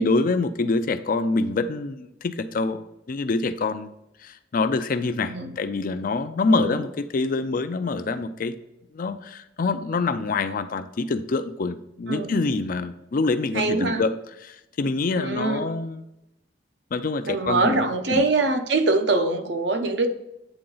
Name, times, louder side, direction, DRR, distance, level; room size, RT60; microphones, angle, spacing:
voice 1, 0.0-3.9 4.2-8.5 8.9-14.1 14.4-16.0 16.9-17.8 18.1-18.2, left 3 dB, 50° left, 10 dB, 0.4 m, -26 dB
voice 2, 12.1-12.4 13.5-14.0 15.2-15.7 17.3-20.1, right 3 dB, 70° right, 7 dB, 0.8 m, -23 dB
8.9 x 3.9 x 3.9 m, 0.89 s
head